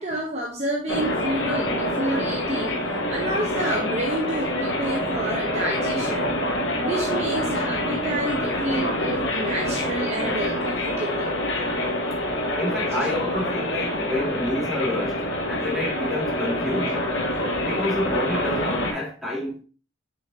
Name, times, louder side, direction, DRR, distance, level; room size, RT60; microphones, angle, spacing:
voice 1, 0.0-6.3 6.8-11.3, right 1 dB, 35° right, 1.0 m, -29 dB
sound 1, 0.9-18.9, left 1 dB, 65° left, 1.6 m, -26 dB
voice 2, 12.6-17.0 17.5-19.6, left 1 dB, ahead, 2.3 m, -29 dB
6.5 x 5.6 x 2.8 m
head